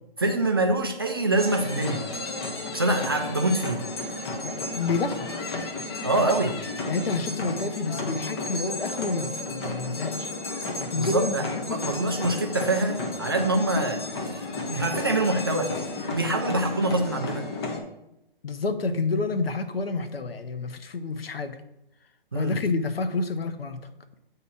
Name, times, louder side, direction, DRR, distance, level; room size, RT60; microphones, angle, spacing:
voice 1, 0.2-2.1 2.7-3.8 6.0-6.6 10.9-17.5 22.3-22.6, right 2 dB, 25° right, 3 dB, 0.4 m, -25 dB
sound 1, 1.4-17.8, left 2 dB, 30° left, 0.8 m, -33 dB
voice 2, 4.4-5.3 6.9-10.3 10.8-11.8 18.4-21.6 22.3-23.8, left 4 dB, 75° left, 9 dB, 0.9 m, -29 dB
8.2 x 2.9 x 6.2 m, 0.88 s
hypercardioid pair, 155°, 30 cm